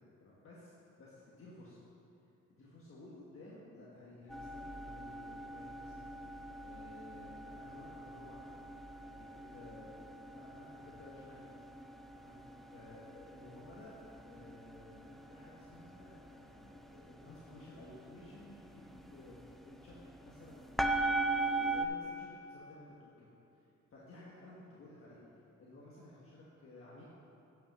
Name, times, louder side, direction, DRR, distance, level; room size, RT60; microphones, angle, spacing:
voice 1, 0.0-1.8 2.6-11.6 12.2-12.4 12.7-13.9 14.3-20.0 20.2-23.3 23.5-23.6 23.9-25.2 25.6-27.0, left 2 dB, 45° left, -6 dB, 1.5 m, -55 dB
sound 1, 4.3-21.9, right 2 dB, ahead, 0.4 m, -41 dB
8.7 x 5.8 x 6.2 m, 2.8 s
cardioid pair, 90°, 30 cm